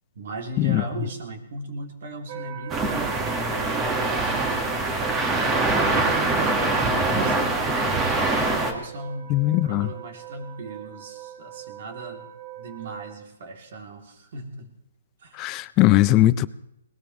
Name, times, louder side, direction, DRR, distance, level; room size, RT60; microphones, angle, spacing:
voice 1, 0.1-4.9 5.2-7.7 8.5-12.3 12.6-14.7 15.2-15.4, right 2 dB, 55° right, 3.0 m, -38 dB
sound 1, 2.3-13.2, right 11 dB, 40° right, 1.5 m, -41 dB
sound 2, 2.7-8.7, right 2 dB, 15° right, 1.6 m, -23 dB
voice 2, 9.3-9.9 15.4-16.5, left 16 dB, 25° left, 0.5 m, -19 dB
20.0 x 19.5 x 3.2 m
hypercardioid pair, 155°, 0 cm